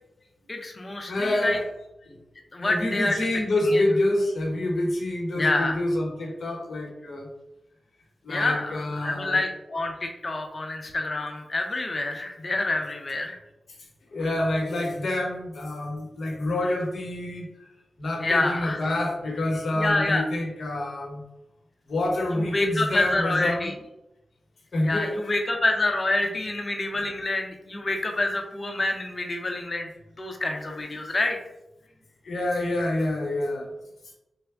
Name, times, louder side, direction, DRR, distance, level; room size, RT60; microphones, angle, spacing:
voice 1, 0.5-1.6 2.5-3.3 3.7-3.8 5.3-5.8 8.3-13.4 18.2-18.8 19.7-20.2 22.3-23.7 24.8-29.9 30.2-31.4, left 2 dB, 45° left, 3 dB, 0.6 m, -27 dB
voice 2, 1.1-1.6 2.1-2.2 2.6-7.3 8.2-9.4 14.1-17.5 18.0-21.2 21.9-23.7 24.7-25.5 32.2-33.7, left 1 dB, 70° left, 0 dB, 0.9 m, -27 dB
3.4 x 2.1 x 3.5 m, 0.90 s
cardioid pair, 50°, 0 cm